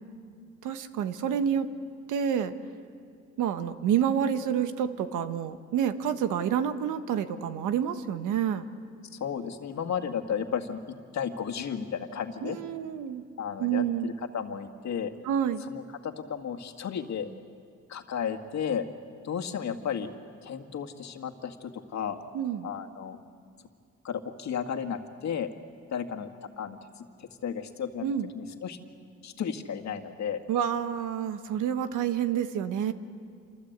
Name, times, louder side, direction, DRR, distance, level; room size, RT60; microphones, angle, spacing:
voice 1, 0.6-1.7 2.1-2.5 3.4-8.7 12.4-13.2 13.6-14.1 15.2-15.6 22.3-22.7 28.0-28.3 30.5-32.9, right 9 dB, 90° right, 10 dB, 1.4 m, -28 dB
voice 2, 9.1-12.6 13.4-15.1 15.7-17.3 17.9-18.9 19.2-20.1 20.4-22.2 22.6-23.2 24.0-25.5 25.9-26.3 26.6-28.1 28.4-28.8 29.2-30.4, left 7 dB, 65° left, 6 dB, 2.1 m, -33 dB
27.5 x 26.0 x 8.2 m, 2.3 s
cardioid pair, 90°, 30 cm